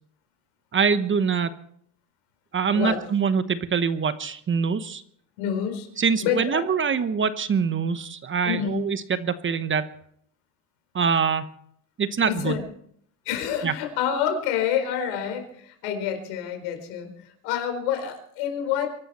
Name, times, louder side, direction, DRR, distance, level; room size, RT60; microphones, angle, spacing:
voice 1, 0.7-1.5 2.5-5.0 6.0-9.9 10.9-11.5 12.0-12.6 13.6-13.7, right 6 dB, 25° right, 12 dB, 1.0 m, -24 dB
voice 2, 5.4-5.9 6.2-6.6 8.4-8.8 12.3-12.6 13.2-18.9, left 9 dB, 75° left, 6 dB, 4.5 m, -28 dB
24.0 x 12.0 x 4.3 m, 0.67 s
supercardioid pair, 105°, 44 cm